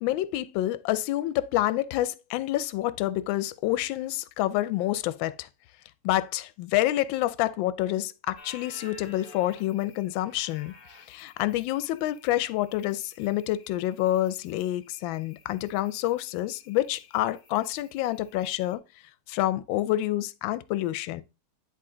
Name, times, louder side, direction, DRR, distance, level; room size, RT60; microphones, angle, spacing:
voice 1, 0.0-5.5 6.0-10.7 11.1-18.8 19.3-21.2, left 14 dB, 75° left, 1.2 m, -28 dB
sound 1, 8.4-18.8, left 4 dB, 30° left, 1.2 m, -54 dB
10.5 x 3.7 x 3.8 m
omnidirectional pair, 2.3 m